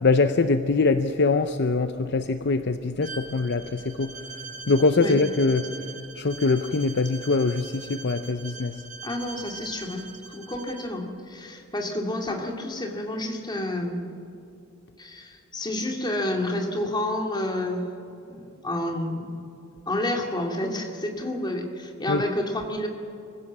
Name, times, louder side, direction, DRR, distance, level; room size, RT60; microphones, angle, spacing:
voice 1, 0.0-4.2 4.7-5.9 6.2-8.8 22.1-22.2, left 3 dB, 55° left, 10 dB, 0.7 m, -23 dB
Bowed string instrument, 3.0-10.9, right 4 dB, 40° right, 1.7 m, -42 dB
voice 2, 9.0-14.2 15.0-17.9 18.3-19.4 19.9-22.9, left 1 dB, 20° left, 2 dB, 2.5 m, -30 dB
24.5 x 15.5 x 7.4 m, 2.7 s
head